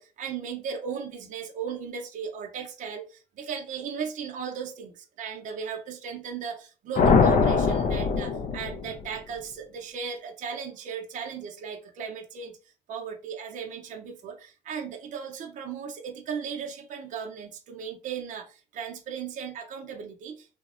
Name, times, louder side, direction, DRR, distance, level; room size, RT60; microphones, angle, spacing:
voice 1, 0.0-12.6 12.9-20.6, right 7 dB, 50° right, 0.6 m, -36 dB
sound 1, 7.0-9.2, left 5 dB, 45° left, 0.4 m, -22 dB
2.8 x 2.1 x 2.4 m
cardioid pair, 110°, 17 cm